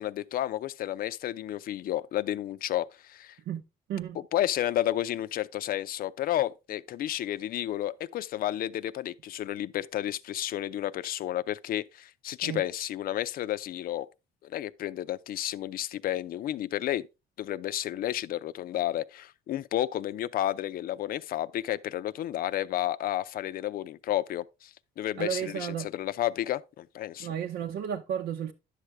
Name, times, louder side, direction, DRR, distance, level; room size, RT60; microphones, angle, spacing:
voice 1, 0.0-3.4 4.3-14.1 14.4-17.1 17.4-27.3, left 13 dB, 60° left, 0.5 m, -31 dB
voice 2, 25.2-25.9 27.2-28.5, right 9 dB, 80° right, 0.9 m, -33 dB
10.5 x 6.6 x 3.4 m
cardioid pair, 110°, 17 cm